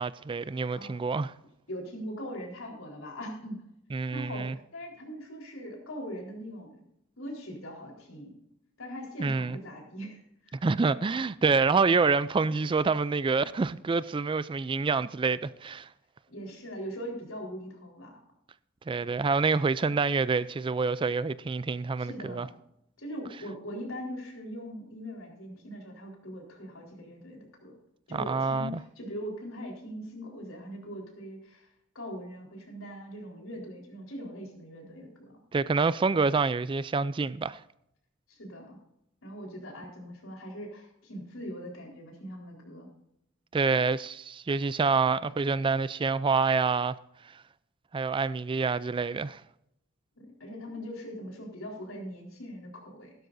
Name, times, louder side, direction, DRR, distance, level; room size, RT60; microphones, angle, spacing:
voice 1, 0.0-1.3 3.9-4.6 9.2-9.6 10.6-15.9 18.9-22.5 28.1-28.8 35.5-37.6 43.5-47.0 47.9-49.4, right 4 dB, 25° right, 0.3 m, -27 dB
voice 2, 1.7-3.6 4.1-6.8 7.2-8.4 8.8-10.7 16.3-18.2 22.0-22.5 23.0-27.7 28.1-31.7 31.9-35.3 38.3-38.8 39.2-42.9 50.2-53.1, equal, 80° left, 4.2 m, -41 dB
16.0 x 12.5 x 2.6 m
head